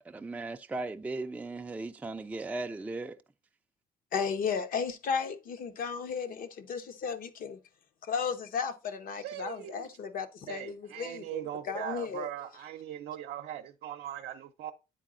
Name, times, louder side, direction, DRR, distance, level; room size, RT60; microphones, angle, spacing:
voice 1, 0.1-3.2, right 3 dB, 10° right, 0.4 m, -37 dB
voice 2, 4.1-7.6 8.0-12.3, left 6 dB, 55° left, 1.0 m, -34 dB
voice 3, 9.2-9.9 10.5-14.7, right 11 dB, 75° right, 0.6 m, -40 dB
9.1 x 4.0 x 3.7 m
cardioid pair, 110°, 17 cm